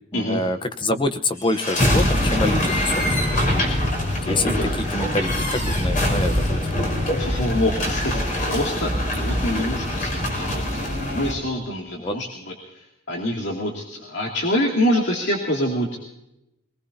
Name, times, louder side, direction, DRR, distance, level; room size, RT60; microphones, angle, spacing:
voice 1, 0.1-3.4 4.3-4.6 4.9-6.6 12.0-12.1, left 2 dB, 25° left, 9 dB, 0.9 m, -26 dB
sound 1, 1.4-11.3, left 1 dB, 40° left, 4.7 m, -23 dB
voice 2, 4.2-4.7 7.2-16.0, left 1 dB, 60° left, -1 dB, 2.5 m, -26 dB
23.0 x 19.5 x 2.8 m, 0.86 s
head